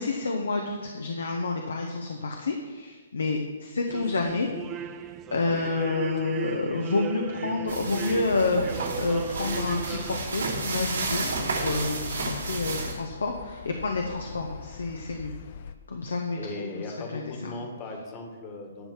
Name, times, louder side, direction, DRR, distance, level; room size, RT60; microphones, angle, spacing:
voice 1, 0.0-4.5 4.7-4.8 5.3-15.3 15.9-16.8 17.1-17.5, left 3 dB, 70° left, 2 dB, 1.0 m, -29 dB
sound 1, 3.9-10.2, right 11 dB, 20° right, 0.4 m, -37 dB
sound 2, 7.7-12.9, right 3 dB, 65° right, 2.5 m, -32 dB
sound 3, 9.3-15.8, left 6 dB, 45° left, 0.6 m, -43 dB
voice 2, 16.4-18.9, left 2 dB, 25° left, 3 dB, 1.6 m, -38 dB
10.5 x 5.6 x 6.1 m, 1.4 s
figure-of-eight pair, 125°, 0 cm